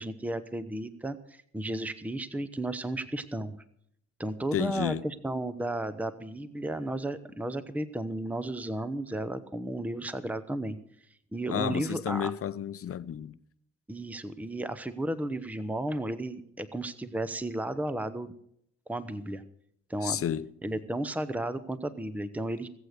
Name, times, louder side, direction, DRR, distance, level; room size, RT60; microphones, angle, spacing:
voice 1, 0.0-3.6 4.2-10.8 11.3-12.3 13.9-18.3 18.9-19.4 19.9-20.2 20.6-22.7, right 1 dB, 5° right, 0.9 m, -33 dB
voice 2, 4.5-5.0 11.5-13.4 20.0-20.5, left 9 dB, 50° left, 0.8 m, -31 dB
19.5 x 8.3 x 6.5 m
cardioid pair, 90°, 30 cm